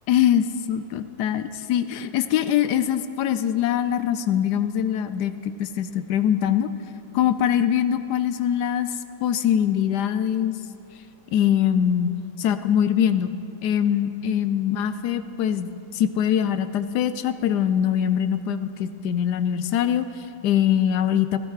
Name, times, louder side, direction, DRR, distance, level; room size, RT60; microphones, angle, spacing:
voice 1, 0.1-6.7 7.1-8.9 9.2-10.5 11.3-13.3 13.6-21.4, left 9 dB, 70° left, 11 dB, 1.0 m, -23 dB
15.5 x 13.0 x 4.9 m, 2.4 s
omnidirectional pair, 2.1 m